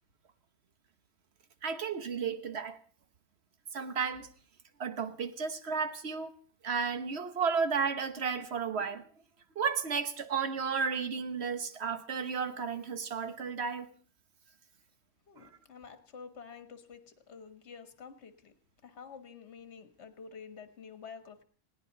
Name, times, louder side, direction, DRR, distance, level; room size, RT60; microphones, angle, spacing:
voice 1, 1.6-2.8 3.7-4.3 4.8-6.3 6.6-9.1 9.5-13.9 15.4-15.5, right 5 dB, 55° right, 1.4 m, -33 dB
voice 2, 15.3-18.5 18.8-21.4, left 6 dB, 55° left, 1.7 m, -49 dB
20.0 x 17.0 x 4.0 m
omnidirectional pair, 1.4 m